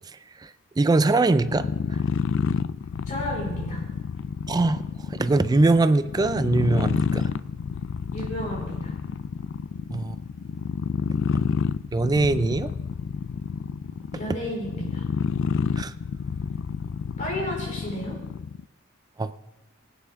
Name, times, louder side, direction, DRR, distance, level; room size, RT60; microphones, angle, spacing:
voice 1, 0.8-1.7 4.5-4.8 5.1-7.3 9.9-10.2 11.9-12.7 15.8-15.9 19.2-19.3, right 2 dB, 20° right, 13 dB, 0.3 m, -22 dB
sound 1, 1.4-18.6, left 6 dB, 65° left, 0.3 m, -29 dB
voice 2, 3.1-3.8 8.1-8.9 14.1-15.1 17.2-18.2, equal, 40° left, -3 dB, 4.8 m, -32 dB
19.5 x 9.1 x 3.6 m, 1.0 s
head